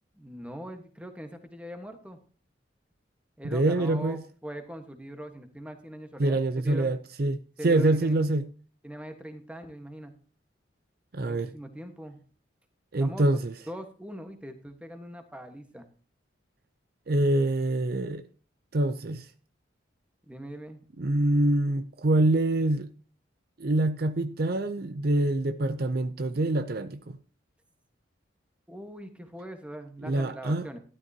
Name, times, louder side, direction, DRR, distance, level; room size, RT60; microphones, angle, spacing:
voice 1, 0.2-2.2 3.4-6.9 7.6-8.2 8.8-10.1 11.2-12.2 13.0-15.8 20.3-20.8 28.7-30.8, equal, 5° right, 1.4 m, -41 dB
voice 2, 3.5-4.2 6.2-7.4 7.6-8.5 11.1-11.5 12.9-13.5 17.1-18.2 18.7-19.3 21.0-22.9 23.6-27.2 30.0-30.7, right 2 dB, 50° right, 0.6 m, -25 dB
13.0 x 12.0 x 2.9 m
head